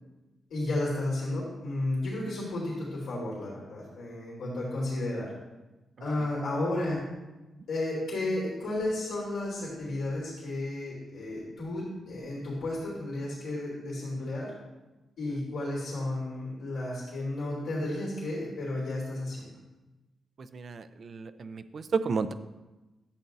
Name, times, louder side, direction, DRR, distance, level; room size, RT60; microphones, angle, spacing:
voice 1, 0.5-5.3 6.0-7.0 7.7-14.5 15.2-19.5, left 1 dB, 90° left, -6 dB, 3.4 m, -33 dB
voice 2, 20.4-22.3, right 5 dB, 55° right, 12 dB, 0.5 m, -32 dB
11.5 x 8.1 x 2.7 m, 1.1 s
cardioid pair, 110°, 0 cm